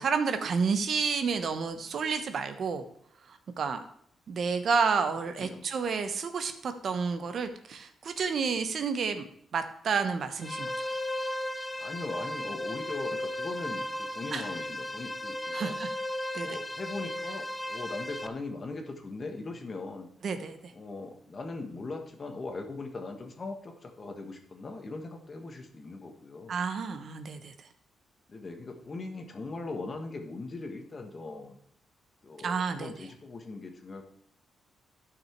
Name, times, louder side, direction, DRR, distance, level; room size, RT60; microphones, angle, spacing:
voice 1, 0.0-2.9 3.3-3.8 4.3-9.3 9.5-10.7 14.3-14.4 15.5-15.9 16.3-16.5 20.2-20.7 26.5-27.5 32.4-32.9, right 5 dB, 55° right, 8 dB, 1.0 m, -30 dB
voice 2, 5.3-5.7 11.8-15.8 16.4-20.1 20.7-26.6 28.3-31.6 32.2-34.1, left 3 dB, 35° left, 4 dB, 1.5 m, -40 dB
sound 1, 10.4-18.3, left 1 dB, 10° left, 0.6 m, -35 dB
12.0 x 6.1 x 4.6 m, 0.65 s
cardioid pair, 120°, 0 cm